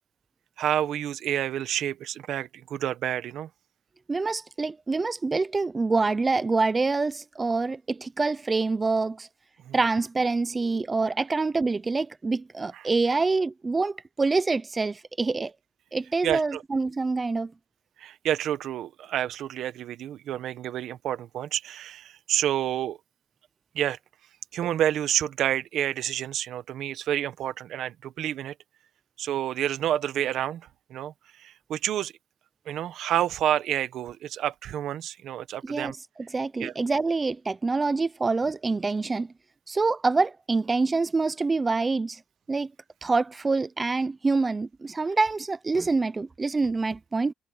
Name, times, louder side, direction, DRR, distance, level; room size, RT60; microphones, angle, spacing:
voice 1, 0.6-3.5 9.6-9.8 12.7-12.8 16.2-16.6 18.0-23.0 23.7-24.0 24.5-28.5 29.2-31.1 31.4-32.1 32.7-35.9 36.6-36.7, right 11 dB, 75° right, 1.2 m, -29 dB
voice 2, 4.1-9.3 9.7-15.5 15.9-17.5 35.6-35.9 36.2-39.3 39.7-42.2 42.5-42.7 43.0-47.3, right 3 dB, 25° right, 0.7 m, -26 dB
cardioid pair, 90°, 0 cm